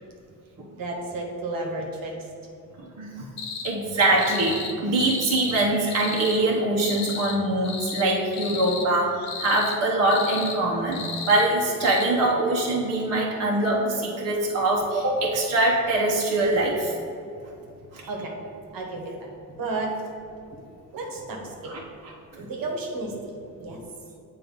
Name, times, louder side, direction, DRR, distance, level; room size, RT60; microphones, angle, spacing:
voice 1, 0.7-2.3 8.6-8.8 18.0-18.3 18.7-19.3 19.6-20.0 20.9-21.8 22.3-23.8, right 2 dB, 65° right, 0 dB, 1.3 m, -32 dB
sound 1, 3.4-3.7 4.1-4.7 5.0-5.6 5.9-6.4 6.8-7.4 7.6-8.1 8.3-8.9 9.2-9.8 10.1-10.6 10.9-11.5 11.8-12.0, left 5 dB, 80° left, 0.9 m, -34 dB
voice 2, 3.6-16.9 21.7-21.8, right 2 dB, 45° right, -3 dB, 1.0 m, -23 dB
7.7 x 2.8 x 5.3 m, 2.6 s
cardioid pair, 90°, 36 cm